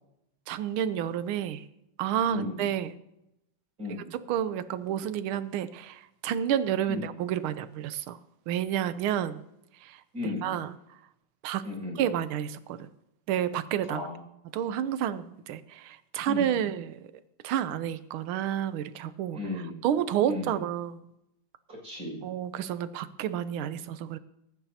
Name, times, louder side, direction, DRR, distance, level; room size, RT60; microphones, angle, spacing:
voice 1, 0.5-1.6 2.0-2.9 4.1-8.2 8.5-9.4 9.8-10.0 10.4-10.7 11.4-11.6 12.0-12.9 13.3-14.0 14.5-17.0 17.4-19.4 19.8-21.1 22.2-24.2, right 10 dB, 90° right, 13 dB, 1.6 m, -30 dB
voice 2, 2.3-2.6 3.8-4.1 6.9-7.1 10.1-10.5 11.6-12.0 13.9-14.2 16.3-16.6 19.3-19.8 20.3-20.6 21.7-22.2, left 3 dB, 40° right, -3 dB, 6.6 m, -35 dB
27.0 x 9.1 x 2.8 m, 0.83 s
omnidirectional pair, 2.3 m